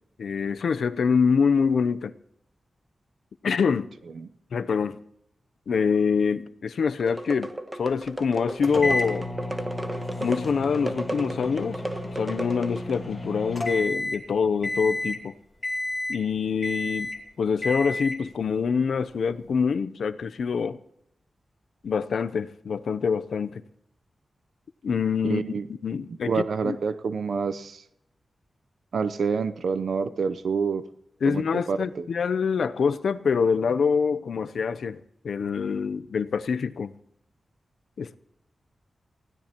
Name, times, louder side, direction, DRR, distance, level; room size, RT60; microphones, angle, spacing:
voice 1, 0.2-2.1 3.4-3.9 4.5-5.0 5.7-7.5 7.8-9.3 10.2-11.8 12.2-15.3 16.1-17.1 17.4-20.8 21.8-23.6 24.8-26.8 31.2-35.0 35.2-36.9 38.0-38.2, left 6 dB, 80° left, 0.6 m, -25 dB
sound 1, 7.0-13.1, right 1 dB, 15° right, 1.2 m, -34 dB
sound 2, 8.6-14.3 14.6-15.2 15.6-16.3 16.6-17.2 17.6-18.2, left 2 dB, 30° left, 2.8 m, -31 dB
voice 2, 25.2-25.7 26.1-27.8 28.9-30.9 31.2-32.1, right 5 dB, 75° right, 0.7 m, -28 dB
20.5 x 16.0 x 3.0 m
wide cardioid pair, 140°, 0 cm